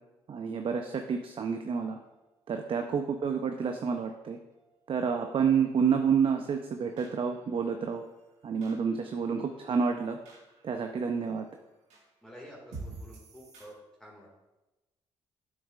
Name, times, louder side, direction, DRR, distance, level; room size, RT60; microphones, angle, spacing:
voice 1, 0.3-2.0 2.5-4.4 4.9-8.0 8.4-10.2 10.6-11.5, right 6 dB, 50° right, 5 dB, 0.6 m, -29 dB
sound 1, 1.4-13.6, right 3 dB, 75° right, 1.7 m, -53 dB
voice 2, 12.2-13.7 14.0-14.3, equal, 5° left, -4 dB, 1.9 m, -50 dB
8.5 x 6.5 x 2.4 m, 1.0 s
supercardioid pair, 55°, 12 cm